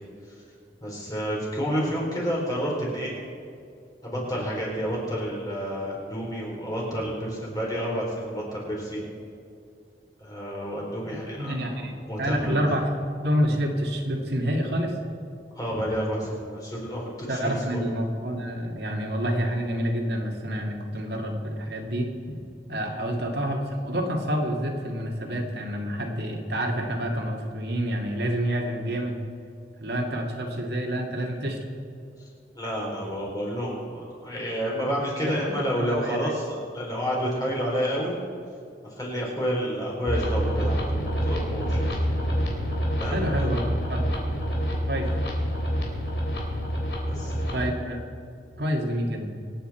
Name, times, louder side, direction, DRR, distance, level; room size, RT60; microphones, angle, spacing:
voice 1, 0.8-3.1 4.0-9.0 10.2-11.8 12.1-12.6 15.5-17.8 22.9-23.1 32.5-38.1 39.0-42.1 43.0-43.3 47.1-47.5, equal, 20° left, -4 dB, 4.6 m, -30 dB
voice 2, 11.4-15.0 17.3-22.1 22.7-29.2 29.8-31.6 35.2-36.3 43.1-44.2 44.9-45.1 47.5-48.0 48.6-49.3, equal, 70° right, 0 dB, 2.2 m, -28 dB
sound 1, 40.1-47.6, equal, 80° left, 3.5 m, -27 dB
26.0 x 9.2 x 4.5 m, 2.5 s
head